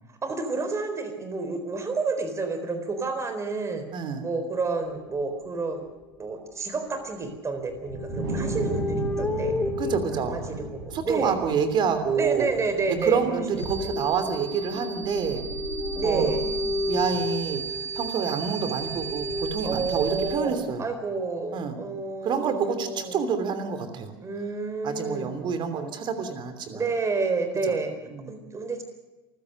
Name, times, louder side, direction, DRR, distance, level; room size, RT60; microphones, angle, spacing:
voice 1, 0.2-3.9 4.2-5.9 6.2-9.9 10.2-11.3 12.1-13.9 16.0-16.4 19.6-23.1 24.2-25.3 26.7-27.9 28.3-28.8, right 3 dB, 25° right, 8 dB, 4.0 m, -30 dB
voice 2, 3.9-4.2 9.8-10.4 10.9-12.5 12.9-15.4 16.0-16.4 16.9-17.6 17.9-20.9 21.5-21.8 22.2-24.1 24.8-26.8 27.6-27.7 28.1-28.3, right 6 dB, 40° right, 9 dB, 3.1 m, -28 dB
sound 1, 5.0-5.1 5.8-6.0 6.9-11.3 13.5-19.5, left 3 dB, 10° left, 1.8 m, -33 dB
Wind, 7.9-14.4, right 2 dB, 60° right, 7.6 m, -35 dB
sound 2, 13.6-20.3, right 5 dB, 90° left, 3.4 m, -35 dB
27.5 x 15.5 x 6.5 m, 1.1 s
figure-of-eight pair, 70°, 12 cm